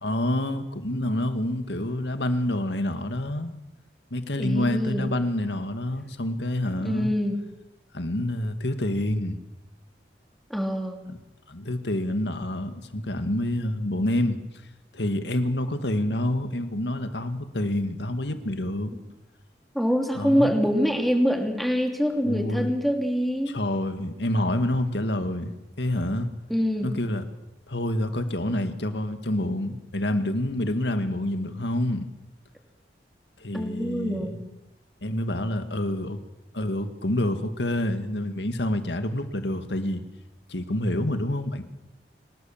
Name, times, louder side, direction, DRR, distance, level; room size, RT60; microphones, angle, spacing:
voice 1, 0.0-3.5 4.1-7.1 7.9-9.4 11.1-11.2 11.5-14.4 14.9-18.9 20.2-20.6 22.2-22.7 23.5-26.3 26.8-27.2 27.7-32.1 33.4-34.4 35.0-36.2 36.5-40.0 40.5-41.6, left 1 dB, 80° left, 8 dB, 2.1 m, -27 dB
voice 2, 4.4-5.1 6.8-7.4 10.5-11.0 18.9-19.0 19.7-23.5 26.5-26.9 33.5-34.4, equal, ahead, 3 dB, 3.0 m, -25 dB
25.0 x 19.0 x 7.5 m, 0.97 s
head